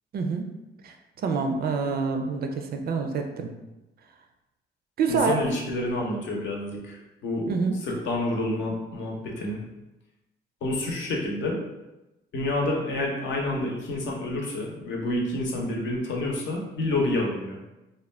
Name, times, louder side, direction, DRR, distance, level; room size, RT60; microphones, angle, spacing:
voice 1, 0.1-0.5 0.8-0.9 1.2-3.5 5.0-5.4 7.5-7.8, right 5 dB, 50° right, 4 dB, 0.4 m, -26 dB
voice 2, 5.1-7.5 7.8-9.6 10.6-11.6 12.3-17.6, left 2 dB, 70° left, -1 dB, 0.7 m, -28 dB
2.4 x 2.2 x 3.2 m, 0.99 s
cardioid pair, 90°, 20 cm